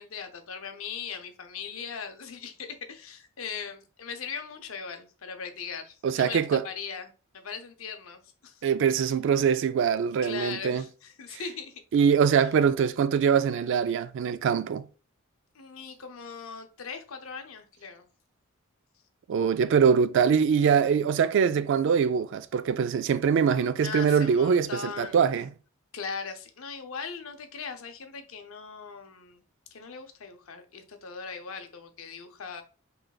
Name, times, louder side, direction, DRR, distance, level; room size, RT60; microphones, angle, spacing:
voice 1, 0.0-8.7 10.2-11.8 15.5-18.0 23.8-25.2 25.9-29.4 29.7-32.6, left 6 dB, 75° left, 0.6 m, -39 dB
voice 2, 6.0-6.6 8.6-10.8 11.3-11.4 11.9-14.8 19.3-25.5, right 7 dB, 60° right, 0.3 m, -23 dB
5.0 x 3.2 x 2.3 m
head